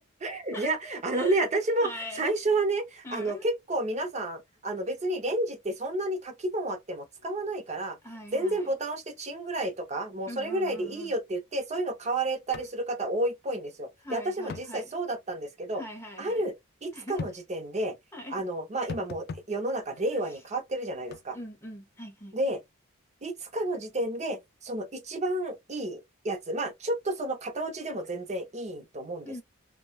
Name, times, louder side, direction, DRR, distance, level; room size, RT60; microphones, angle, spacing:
voice 1, 0.0-8.0 8.3-15.8 16.2-16.5 16.8-18.0 18.3-21.4 22.3-22.6 23.2-29.4, right 2 dB, 35° right, 0.6 m, -31 dB
voice 2, 1.1-1.5 1.8-2.2 3.0-3.4 8.0-8.6 10.3-11.1 14.0-14.9 15.8-16.4 16.9-17.2 18.1-18.4 21.3-22.4 29.2-29.4, left 1 dB, 10° left, 0.8 m, -41 dB
sound 1, 12.5-12.7 13.0-13.1 14.5-14.7 17.2-17.4 18.9-19.5 21.1-21.2, left 4 dB, 50° left, 0.3 m, -38 dB
3.0 x 2.2 x 2.3 m
head